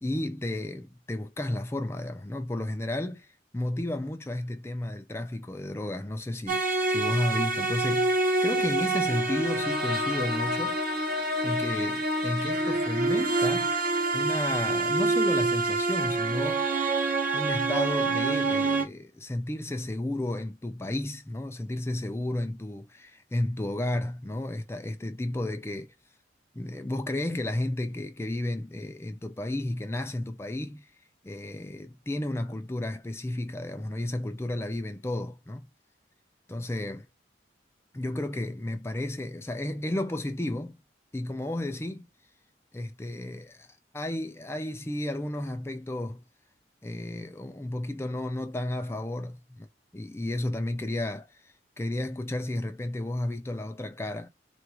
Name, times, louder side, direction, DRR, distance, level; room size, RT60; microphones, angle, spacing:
voice 1, 0.0-10.8 11.4-13.8 14.1-16.7 17.3-25.9 26.5-30.9 31.2-35.7 36.5-37.0 37.9-40.8 41.1-42.1 42.7-43.7 43.9-46.2 46.8-49.7 49.9-54.3, left 1 dB, 15° left, 0.4 m, -32 dB
sound 1, 6.5-18.9, right 2 dB, 50° right, 0.8 m, -27 dB
3.8 x 2.4 x 4.5 m
head